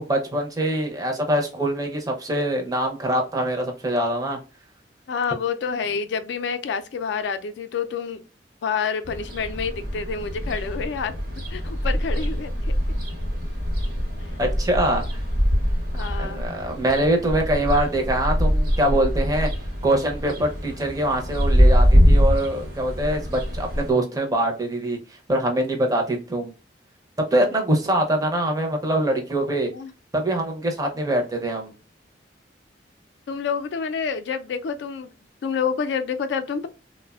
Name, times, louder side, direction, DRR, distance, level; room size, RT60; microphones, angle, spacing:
voice 1, 0.0-4.4 14.4-15.2 16.2-19.5 19.8-25.0 25.3-26.5 27.3-29.7 30.1-31.7, right 1 dB, 20° right, 0.5 m, -23 dB
voice 2, 5.1-8.2 8.6-11.1 11.5-12.5 15.9-16.5 29.7-29.9 33.3-35.1 35.4-36.7, left 6 dB, 75° left, 0.3 m, -28 dB
sound 1, 9.0-23.9, equal, 55° right, 0.9 m, -23 dB
3.2 x 2.1 x 2.2 m
head